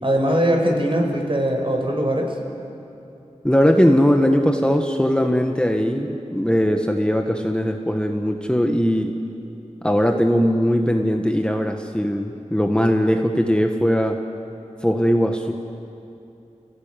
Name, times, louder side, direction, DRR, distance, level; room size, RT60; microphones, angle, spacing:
voice 1, 0.0-2.4, equal, 45° right, 1 dB, 5.5 m, -21 dB
voice 2, 3.4-9.1 9.8-14.2 14.8-15.5, equal, 5° left, 3 dB, 1.6 m, -19 dB
29.0 x 17.5 x 9.3 m, 2.8 s
wide cardioid pair, 45°, 13 cm